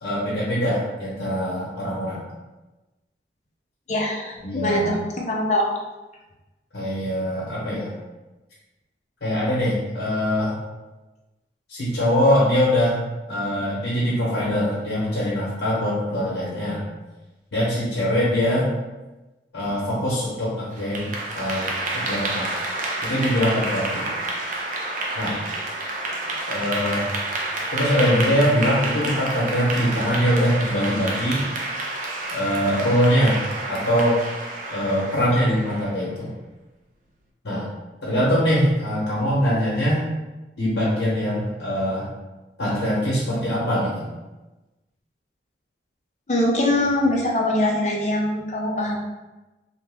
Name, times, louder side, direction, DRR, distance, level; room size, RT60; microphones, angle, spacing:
voice 1, 0.0-2.2 4.4-4.9 6.7-7.9 9.2-10.5 11.7-16.9 17.5-18.7 19.5-21.1 21.3-22.5 23.0-24.1 25.1-25.4 26.5-27.1 27.7-31.4 32.3-33.4 33.7-34.2 34.7-36.3 37.4-37.7 38.0-40.0 40.6-42.1 42.6-44.1, equal, 80° left, -7 dB, 0.9 m, -22 dB
voice 2, 3.9-5.7 46.3-49.0, left 1 dB, 40° left, -1 dB, 0.5 m, -22 dB
Clapping / Applause, 20.7-36.0, right 2 dB, 45° right, 0.4 m, -29 dB
2.9 x 2.1 x 3.3 m, 1.1 s
head